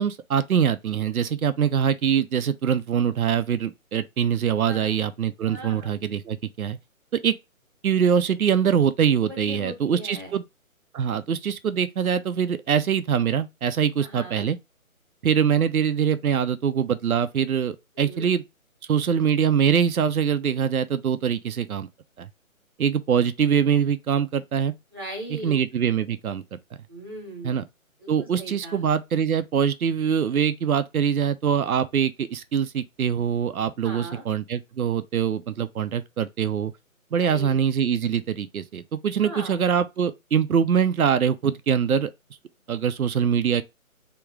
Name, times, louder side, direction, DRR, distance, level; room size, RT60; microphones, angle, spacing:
voice 1, 0.0-6.8 7.1-7.3 7.8-10.4 10.9-14.6 15.2-18.4 18.9-21.9 22.2-22.3 22.8-24.7 25.4-26.6 27.4-27.6 28.1-36.7 37.1-42.1 42.7-43.6, right 8 dB, 80° right, 0.7 m, -23 dB
voice 2, 5.4-5.9 9.3-10.4 14.0-14.4 17.9-18.3 24.9-25.6 26.9-27.6 28.0-28.8 33.8-34.2 37.2-37.6 39.2-39.6, right 1 dB, 15° right, 1.1 m, -39 dB
3.6 x 3.0 x 4.6 m
hypercardioid pair, 170°, 42 cm